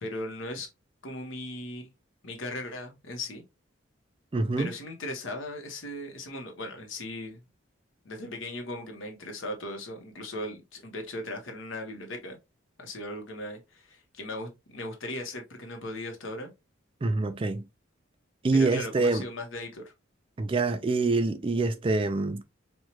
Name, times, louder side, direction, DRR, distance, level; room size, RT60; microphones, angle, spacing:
voice 1, 0.0-0.7 1.0-1.9 2.2-3.4 4.6-7.4 8.0-12.4 12.8-16.5 18.5-19.9, left 1 dB, 70° left, 1.1 m, -38 dB
voice 2, 4.3-4.7 17.0-17.7 18.4-19.3 20.4-22.4, right 3 dB, 25° right, 0.3 m, -26 dB
4.4 x 2.4 x 3.0 m
head